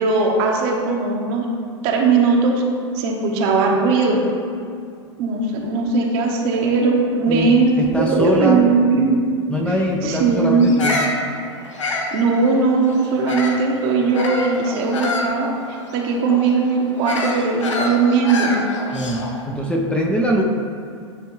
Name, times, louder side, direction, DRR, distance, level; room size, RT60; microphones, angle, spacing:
voice 1, 0.0-1.5 1.8-2.5 2.9-4.3 5.2-9.2 10.0-10.8 12.1-15.5 15.9-18.6, right 4 dB, 55° right, 0 dB, 1.1 m, -18 dB
voice 2, 7.3-8.7 9.5-11.0 18.9-20.4, equal, 5° left, -1 dB, 0.7 m, -22 dB
Bird vocalization bird call bird song, 10.6-13.7 14.1-19.4, left 2 dB, 90° left, 0.8 m, -27 dB
9.8 x 3.4 x 3.2 m, 2.3 s
hypercardioid pair, 105°, 15 cm